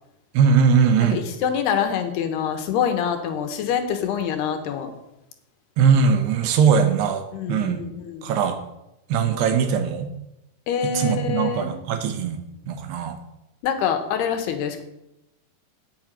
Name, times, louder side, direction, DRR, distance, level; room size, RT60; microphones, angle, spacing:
voice 1, 0.3-1.2 5.8-7.8 8.2-8.6 9.1-10.1 10.8-12.4 12.7-13.2, right 6 dB, 90° right, 7 dB, 3.2 m, -20 dB
voice 2, 1.1-4.9 7.3-8.3 10.7-11.7 13.6-14.8, left 8 dB, 85° left, 6 dB, 3.2 m, -25 dB
8.9 x 7.4 x 8.8 m, 0.89 s
omnidirectional pair, 4.6 m